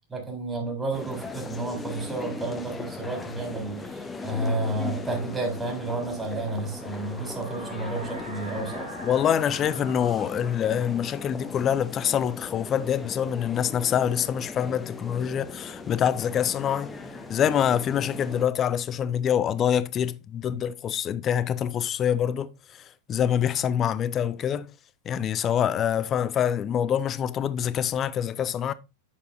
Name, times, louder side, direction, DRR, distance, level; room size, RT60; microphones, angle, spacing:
voice 1, 0.1-8.9, right 2 dB, 15° right, 3.3 m, -31 dB
sound 1, 0.9-18.5, left 4 dB, 10° left, 0.9 m, -38 dB
sound 2, 4.2-12.9, right 1 dB, 85° right, 3.0 m, -45 dB
voice 2, 9.0-16.9 17.3-22.5 23.1-24.7 25.1-28.7, left 9 dB, 30° left, 0.5 m, -25 dB
9.1 x 6.7 x 2.6 m
figure-of-eight pair, 90°, 0 cm